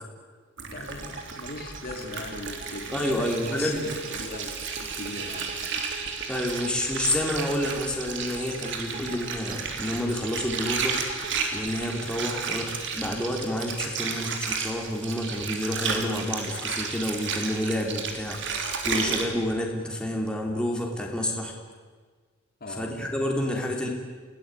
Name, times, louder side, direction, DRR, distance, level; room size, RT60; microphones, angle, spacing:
Water, 0.6-19.3, right 5 dB, 60° right, 3.4 m, -33 dB
voice 1, 0.7-5.6 22.6-23.0, left 2 dB, 45° left, 3 dB, 3.3 m, -39 dB
sound 1, 0.9-13.1, right 3 dB, 40° right, 2.2 m, -43 dB
voice 2, 2.9-3.9 6.3-11.0 11.5-21.5 22.7-23.9, left 1 dB, 5° left, 0 dB, 3.3 m, -29 dB
28.0 x 18.0 x 9.1 m, 1.5 s
head